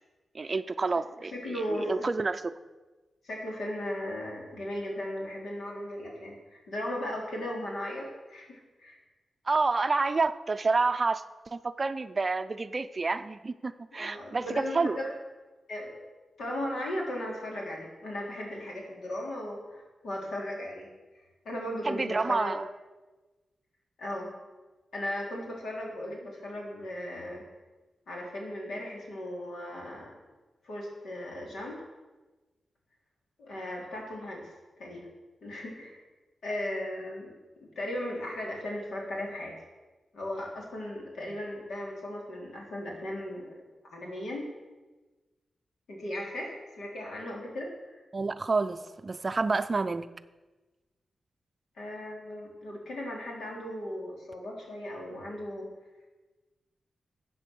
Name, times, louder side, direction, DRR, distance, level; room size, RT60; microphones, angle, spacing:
voice 1, 0.3-2.5 9.5-11.2 11.5-15.0 21.8-22.7 48.1-50.1, right 3 dB, 30° right, 11 dB, 0.5 m, -29 dB
voice 2, 1.3-2.1 3.2-9.0 13.9-15.1 15.7-16.0 16.4-20.9 21.2-22.5 24.0-24.3 24.9-27.4 28.1-30.1 30.6-31.8 33.4-34.4 34.8-35.1 35.4-36.0 36.4-37.3 37.8-39.5 40.1-43.6 43.9-44.5 45.9-48.0 51.8-55.7, left 1 dB, 85° left, -1 dB, 3.6 m, -37 dB
13.5 x 8.5 x 6.2 m, 1.2 s
wide cardioid pair, 140°, 0 cm